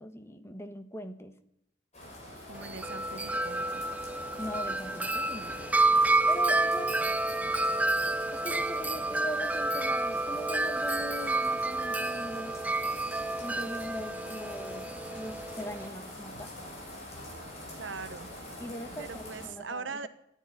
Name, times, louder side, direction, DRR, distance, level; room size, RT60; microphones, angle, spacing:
voice 1, 0.0-1.3 4.4-5.7 6.3-7.0 8.3-12.5 13.4-16.5 18.6-20.1, equal, 15° left, 8 dB, 1.2 m, -41 dB
sound 1, 1.9-19.5, left 1 dB, 35° left, 5.8 m, -45 dB
Wind chime, 2.5-15.9, right 2 dB, 10° right, 0.6 m, -29 dB
voice 2, 2.5-3.9 17.7-18.3 19.0-20.1, right 4 dB, 70° right, 11 dB, 1.1 m, -41 dB
14.5 x 10.0 x 9.9 m, 0.78 s
head